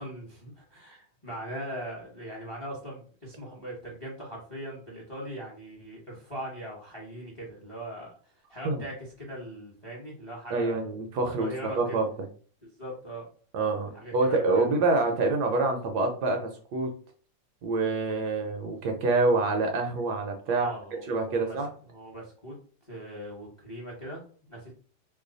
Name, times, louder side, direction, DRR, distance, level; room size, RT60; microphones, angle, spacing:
voice 1, 0.0-10.8 11.4-12.0 12.6-13.3 13.9-14.9 20.4-21.6 21.9-22.6 22.9-24.7, right 1 dB, 25° left, -3 dB, 0.7 m, -40 dB
voice 2, 10.5-11.5 11.8-12.1 13.5-16.9 17.6-20.7 21.0-21.7, right 3 dB, 70° right, 4 dB, 1.1 m, -26 dB
3.1 x 2.2 x 3.8 m, 0.42 s
omnidirectional pair, 2.0 m